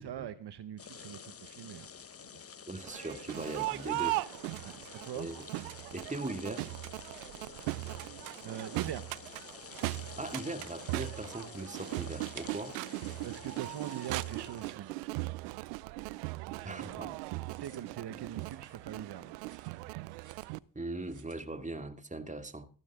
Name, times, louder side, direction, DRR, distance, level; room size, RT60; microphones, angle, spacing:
voice 1, 0.0-1.9 4.6-5.3 8.4-9.1 13.2-15.0 16.4-17.1 17.5-19.4 19.8-19.9, right 10 dB, 60° right, 1.3 m, -43 dB
sound 1, 0.8-14.7, left 6 dB, 30° left, 1.0 m, -50 dB
voice 2, 2.7-4.2 5.1-5.3 5.9-6.7 10.2-12.8 16.6-17.4 20.7-22.7, right 2 dB, 15° right, 2.5 m, -40 dB
Crowd, 2.8-20.6, right 22 dB, 90° right, 0.5 m, -39 dB
sound 2, 7.1-7.8 8.0-9.1 9.5-11.6 11.8-13.1 13.4-15.6 15.9-19.0 19.3-20.6 21.0-21.4, right 5 dB, 40° right, 2.4 m, -58 dB
15.5 x 12.5 x 3.8 m
hypercardioid pair, 45°, 45 cm